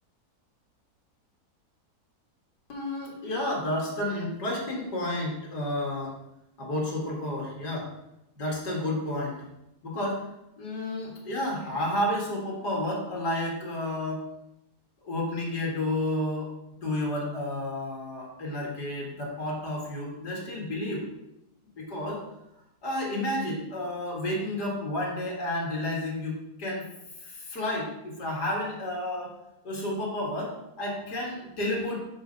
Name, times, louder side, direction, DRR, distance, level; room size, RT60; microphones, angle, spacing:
voice 1, 2.7-6.2 6.6-7.9 8.4-9.4 9.8-10.2 10.6-14.2 15.0-16.5 16.8-21.0 21.8-22.2 22.8-26.9 27.2-29.3 29.6-32.0, left 1 dB, 80° left, -2 dB, 2.5 m, -31 dB
6.4 x 5.1 x 5.3 m, 0.86 s
omnidirectional pair, 1.7 m